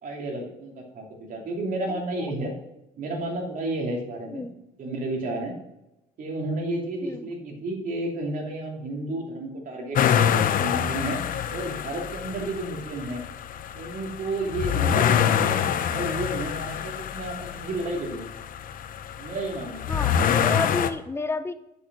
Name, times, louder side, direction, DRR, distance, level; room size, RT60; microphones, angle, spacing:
voice 1, 0.0-2.5 3.0-4.5 4.8-5.6 6.2-11.2 11.5-13.2 13.7-15.6 15.9-18.3 19.2-19.8, right 2 dB, 50° right, 1 dB, 2.9 m, -32 dB
voice 2, 1.9-2.3 4.3-4.5 7.0-7.3 14.8-15.1 19.9-21.5, left 3 dB, 15° left, 11 dB, 0.7 m, -31 dB
sound 1, 9.9-20.9, left 9 dB, 55° left, 0.8 m, -26 dB
10.5 x 6.9 x 6.2 m, 0.93 s
cardioid pair, 110°, 17 cm